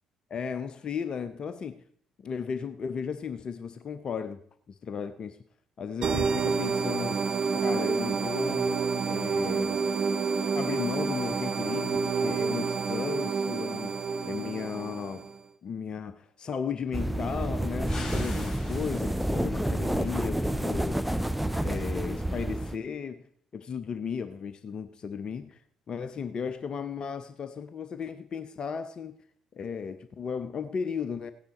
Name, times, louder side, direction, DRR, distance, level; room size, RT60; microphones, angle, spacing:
voice 1, 0.3-1.8 2.2-4.4 4.7-5.4 5.8-7.2 7.6-8.8 9.1-9.8 10.5-14.0 14.2-15.3 15.6-21.0 21.6-23.2 23.5-25.6 25.9-29.2 29.5-31.3, left 6 dB, 40° left, 0.7 m, -35 dB
sound 1, 6.0-15.4, right 5 dB, 40° right, 0.7 m, -29 dB
sound 2, 16.9-22.8, right 1 dB, ahead, 0.7 m, -29 dB
sound 3, 17.8-19.5, left 3 dB, 20° left, 4.6 m, -42 dB
16.5 x 9.8 x 4.2 m
figure-of-eight pair, 45°, 2 cm